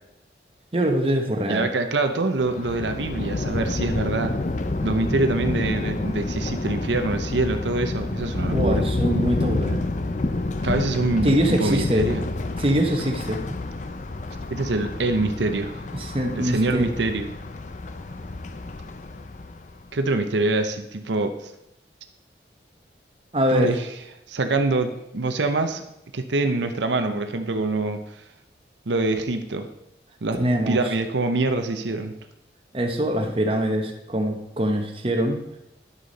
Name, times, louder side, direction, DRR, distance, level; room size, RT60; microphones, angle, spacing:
voice 1, 0.7-1.7 8.5-9.8 11.2-12.1 12.6-13.6 16.0-16.9 23.3-23.7 30.4-30.8 32.7-35.4, right 1 dB, 30° right, 4 dB, 1.1 m, -23 dB
voice 2, 1.5-4.4 4.8-8.8 10.6-12.2 14.5-15.8 16.3-17.3 19.9-21.5 23.5-23.9 24.3-25.8 26.1-28.2 28.9-29.7 30.2-30.4 30.7-32.2, right 2 dB, 80° right, 7 dB, 0.8 m, -25 dB
Thunder, 2.4-19.8, left 2 dB, 45° left, 0.5 m, -28 dB
11.0 x 6.5 x 4.1 m, 0.86 s
head